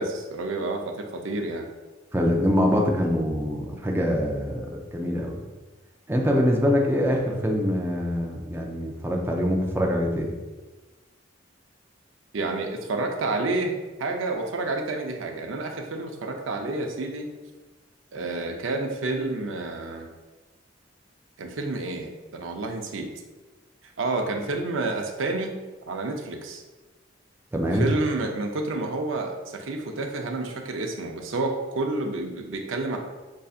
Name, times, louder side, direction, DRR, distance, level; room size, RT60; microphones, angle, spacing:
voice 1, 0.0-1.7 12.3-17.3 18.1-20.1 21.4-23.1 24.0-25.6 25.9-26.6 27.7-33.0, right 2 dB, 85° right, 3 dB, 0.5 m, -29 dB
voice 2, 2.1-5.4 6.1-10.3 27.5-27.9, equal, 10° right, 0 dB, 0.4 m, -24 dB
5.4 x 2.6 x 2.4 m, 1.2 s
head